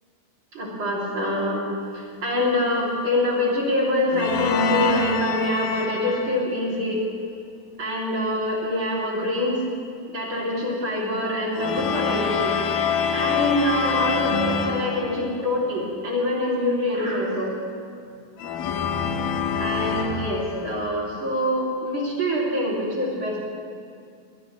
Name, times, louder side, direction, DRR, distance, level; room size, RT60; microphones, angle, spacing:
voice 1, 0.5-7.0 7.8-9.6 10.1-12.6 13.1-17.5 19.6-23.4, left 1 dB, 35° right, -4 dB, 2.9 m, -25 dB
sound 1, 4.1-6.5 11.5-15.6 18.4-20.8, left 5 dB, 75° left, 2.2 m, -25 dB
22.0 x 19.5 x 3.1 m, 2.2 s
omnidirectional pair, 4.7 m